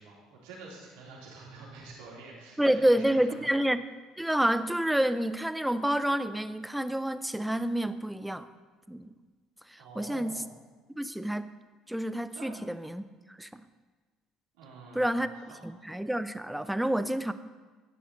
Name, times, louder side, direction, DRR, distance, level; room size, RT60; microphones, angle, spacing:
voice 1, 0.0-3.5 9.8-10.5 12.3-12.7 14.5-15.7, right 3 dB, 70° right, -4 dB, 3.4 m, -47 dB
voice 2, 2.6-3.8 4.2-8.5 8.9-9.1 9.7-10.4 11.0-11.5 11.9-13.0 13.3-13.6 14.9-15.3 15.6-17.3, right 1 dB, 5° right, 13 dB, 0.6 m, -28 dB
11.0 x 10.0 x 4.2 m, 1.3 s
hypercardioid pair, 60°, 0 cm